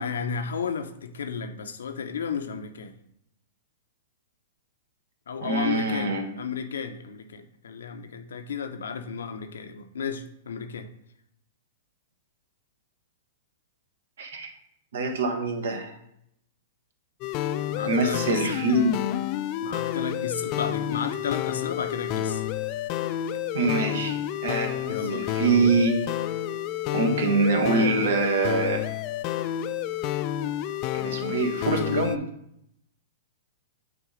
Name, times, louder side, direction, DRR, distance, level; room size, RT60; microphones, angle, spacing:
voice 1, 0.0-2.9 5.3-10.9 17.7-18.9 19.6-22.4 24.9-25.3, left 6 dB, 85° left, 8 dB, 0.6 m, -33 dB
voice 2, 5.4-6.2 14.2-14.5 14.9-15.9 17.8-19.0 23.5-26.1 26.9-28.8 30.9-32.2, right 3 dB, 75° right, 4 dB, 1.2 m, -25 dB
sound 1, 17.2-32.2, left 12 dB, 40° left, 0.4 m, -30 dB
6.0 x 3.8 x 5.0 m, 0.75 s
hypercardioid pair, 130°, 0 cm